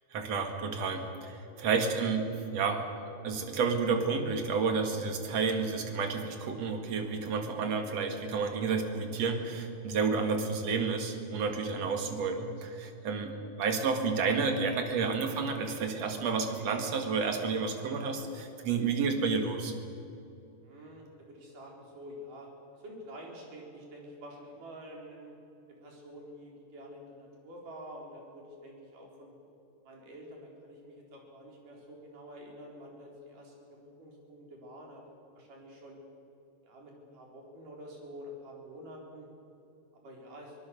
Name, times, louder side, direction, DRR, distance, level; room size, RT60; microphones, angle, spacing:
voice 1, 0.1-2.8 3.2-13.3 13.6-19.7, right 5 dB, 55° right, 5 dB, 2.9 m, -30 dB
voice 2, 20.6-22.5 22.8-25.3 25.8-29.3 29.8-36.0 36.6-39.3 40.0-40.6, equal, 70° right, -1 dB, 5.7 m, -48 dB
24.5 x 19.0 x 7.0 m, 2.8 s
omnidirectional pair, 3.9 m